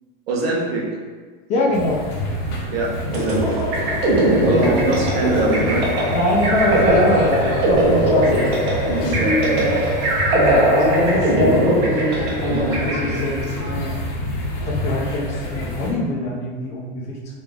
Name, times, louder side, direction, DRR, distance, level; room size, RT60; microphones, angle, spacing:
voice 1, 0.3-0.8 2.7-6.0 8.3-8.5 9.2-9.8, right 2 dB, 85° right, -2 dB, 1.1 m, -24 dB
voice 2, 1.5-2.1 4.4-4.8 6.1-8.7 9.2-9.8 10.3-13.9 14.6-17.2, left 1 dB, 25° left, -2 dB, 0.5 m, -23 dB
sound 1, 1.7-15.9, left 1 dB, 40° left, 0.9 m, -28 dB
sound 2, 3.1-13.6, right 1 dB, 60° right, 1.1 m, -20 dB
sound 3, 3.7-9.2, left 5 dB, 70° left, 0.6 m, -31 dB
3.3 x 2.9 x 3.5 m, 1.5 s
supercardioid pair, 165°, 29 cm